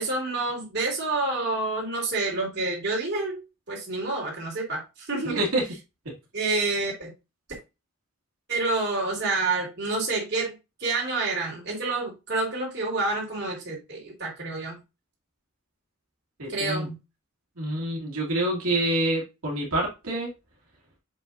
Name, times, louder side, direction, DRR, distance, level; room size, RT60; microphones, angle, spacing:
voice 1, 0.0-5.4 6.3-7.1 7.5-7.6 8.5-10.5 10.8-14.8 16.5-17.0, right 3 dB, 50° right, 3.2 m, -28 dB
voice 2, 5.2-5.6 6.4-6.6 16.4-16.9 17.6-20.3, right 1 dB, 85° right, 2.3 m, -27 dB
7.0 x 5.5 x 2.6 m
head